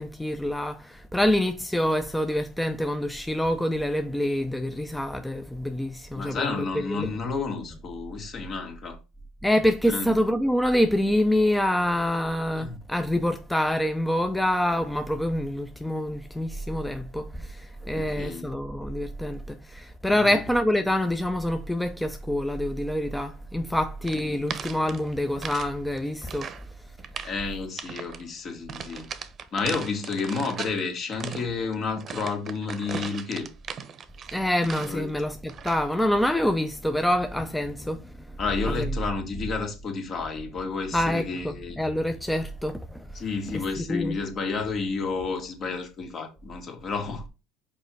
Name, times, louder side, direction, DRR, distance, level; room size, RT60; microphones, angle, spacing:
voice 1, 0.0-7.1 9.4-26.5 34.3-38.1 38.7-38.9 40.9-43.1 43.9-44.2, left 1 dB, 5° left, 0.6 m, -26 dB
voice 2, 6.1-9.0 9.9-10.1 12.6-12.8 17.9-18.5 20.2-20.4 24.1-24.5 27.2-29.1 29.5-33.5 34.8-35.1 38.4-41.8 43.1-47.2, left 4 dB, 45° left, 2.1 m, -31 dB
sound 1, 24.0-25.7 26.0-26.7 27.0-27.4 27.8-28.2 28.7-30.8 31.1-35.1 35.5-35.9, right 7 dB, 40° right, 0.8 m, -38 dB
5.4 x 4.5 x 4.7 m
supercardioid pair, 95°, 0 cm